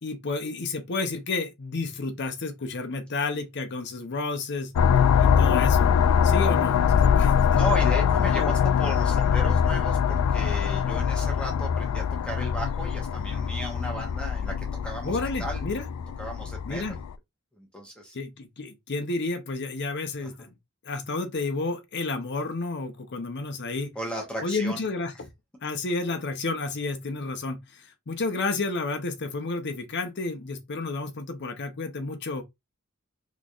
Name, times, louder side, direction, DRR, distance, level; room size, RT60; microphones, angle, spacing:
voice 1, 0.0-4.7 5.2-5.9 6.2-7.4 8.3-8.5 15.0-15.8 16.7-17.0 18.1-20.5 20.8-23.9 24.4-25.3 25.6-32.4, left 3 dB, 50° left, 0.7 m, -31 dB
sound 1, 4.8-17.1, left 7 dB, 85° left, 0.3 m, -23 dB
voice 2, 7.5-15.6 16.2-17.0 17.6-18.1 20.2-20.5 23.9-24.9, right 1 dB, 5° left, 0.9 m, -35 dB
3.9 x 3.0 x 2.4 m
head